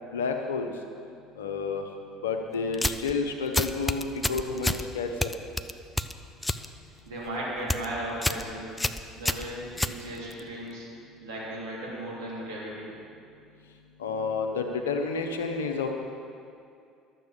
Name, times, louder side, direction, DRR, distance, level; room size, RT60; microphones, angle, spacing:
voice 1, 0.1-0.7 1.4-1.9 2.2-5.3 14.0-15.9, left 4 dB, 70° left, 4 dB, 1.0 m, -30 dB
sound 1, 2.7-3.1 3.5-4.8 5.2-6.7 7.0-7.3 7.6-7.9 8.2-8.5 8.8-10.4, left 1 dB, 10° left, 0.5 m, -29 dB
voice 2, 7.0-8.8 9.2-10.9 11.2-12.9, right 1 dB, 65° right, -6 dB, 3.3 m, -36 dB
12.0 x 7.5 x 7.3 m, 2.4 s
figure-of-eight pair, 60°, 0 cm